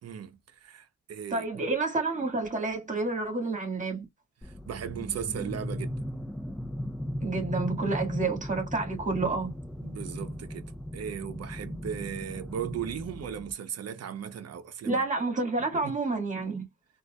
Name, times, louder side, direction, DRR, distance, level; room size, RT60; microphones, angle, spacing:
voice 1, 0.0-1.6 4.4-6.0 9.8-15.1 15.7-15.9, right 8 dB, 55° right, 0.9 m, -37 dB
voice 2, 1.3-4.1 7.2-9.5 14.9-16.7, right 3 dB, 25° right, 2.1 m, -29 dB
sound 1, 4.4-13.5, equal, 5° left, 0.8 m, -37 dB
4.0 x 2.7 x 2.4 m
cardioid pair, 90°, 30 cm